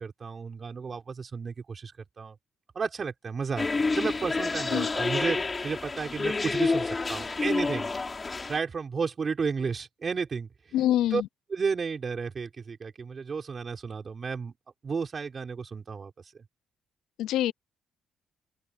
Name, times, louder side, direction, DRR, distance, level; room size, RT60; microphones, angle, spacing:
voice 1, 0.0-2.4 2.7-3.7 3.9-5.4 5.6-7.9 8.5-11.2 11.5-14.6 14.8-16.1, right 5 dB, 40° right, 5.8 m, -32 dB
sound 1, 3.6-8.6, left 3 dB, 25° left, 5.7 m, -29 dB
voice 2, 10.7-11.2 17.2-17.5, left 12 dB, 85° left, 0.6 m, -25 dB
open air
cardioid pair, 90°, 0 cm